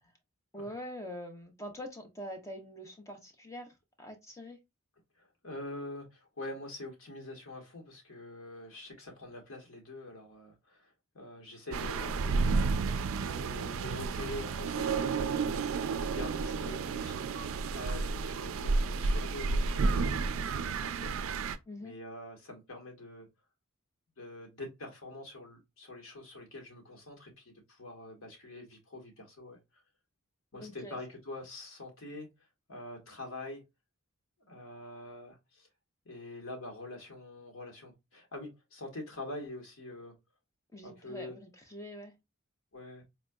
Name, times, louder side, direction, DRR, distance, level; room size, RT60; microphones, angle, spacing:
voice 1, 0.5-4.6 21.7-21.9 30.6-31.0 40.7-42.1, equal, 15° left, 0.7 m, -44 dB
voice 2, 5.2-12.6 13.2-15.6 15.9-17.2 17.7-21.2 21.8-23.3 24.2-29.8 30.5-32.3 32.7-33.6 34.5-35.7 36.0-40.2 40.8-41.4 42.7-43.0, left 2 dB, 70° left, 1.4 m, -45 dB
sound 1, 11.7-21.6, right 4 dB, 65° right, 0.3 m, -31 dB
4.1 x 2.7 x 2.3 m
head